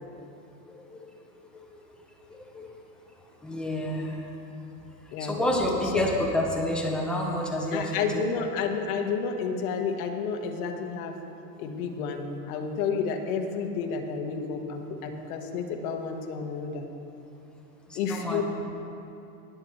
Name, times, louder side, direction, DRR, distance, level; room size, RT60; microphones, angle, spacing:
voice 1, 0.7-1.1 1.5-1.6 2.3-2.7 3.4-4.3 5.2-8.0 15.2-15.3 17.9-18.4, left 1 dB, ahead, -2 dB, 0.8 m, -29 dB
voice 2, 7.7-11.2 11.6-16.8 17.9-18.4, left 5 dB, 55° left, 4 dB, 1.2 m, -30 dB
20.0 x 7.7 x 3.1 m, 2.8 s
supercardioid pair, 150°, 50 cm